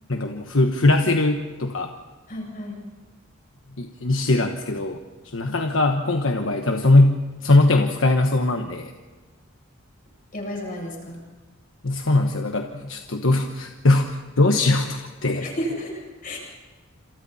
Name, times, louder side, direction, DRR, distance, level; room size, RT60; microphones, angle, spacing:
voice 1, 0.1-1.9 3.8-5.0 5.2-8.9 11.8-15.5, left 2 dB, 70° left, 4 dB, 1.3 m, -20 dB
voice 2, 2.3-2.8 10.3-11.2 15.4-16.4, equal, 45° left, -1 dB, 7.8 m, -32 dB
28.0 x 28.0 x 4.3 m, 1.3 s
head